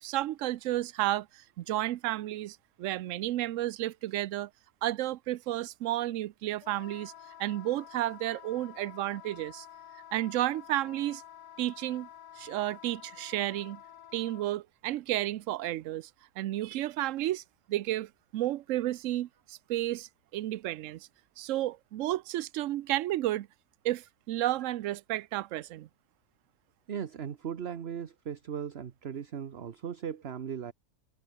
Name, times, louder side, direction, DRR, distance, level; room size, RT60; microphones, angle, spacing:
voice 1, 0.0-4.5 4.8-7.1 7.4-9.7 10.1-11.2 11.6-12.1 12.4-13.8 14.1-16.1 16.4-17.4 17.7-21.1 21.4-23.5 23.8-25.9, right 14 dB, 65° right, 0.8 m, -32 dB
Wind instrument woodwind instrument, 6.6-14.5, left 10 dB, 85° left, 1.6 m, -50 dB
voice 2, 26.9-30.7, right 8 dB, 45° right, 1.1 m, -38 dB
omnidirectional pair, 1.7 m